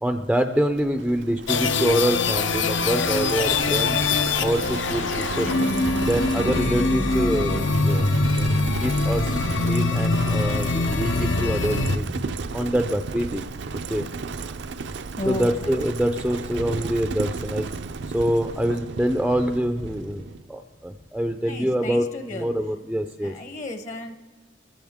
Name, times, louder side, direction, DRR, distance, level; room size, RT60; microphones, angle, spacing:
voice 1, 0.0-4.0 4.4-5.5 6.0-8.0 8.3-8.5 8.8-12.0 12.5-13.4 13.9-14.1 15.3-17.7 18.1-23.3, equal, 5° right, 6 dB, 0.4 m, -25 dB
Livestock farm animals working animals, 0.8-20.4, right 4 dB, 65° right, 0.5 m, -34 dB
sound 1, 1.5-12.0, left 3 dB, 75° left, 0.8 m, -23 dB
voice 2, 15.1-15.5 21.4-22.5 23.2-24.1, left 1 dB, 40° left, 7 dB, 0.9 m, -33 dB
22.5 x 15.0 x 3.6 m, 1.5 s
head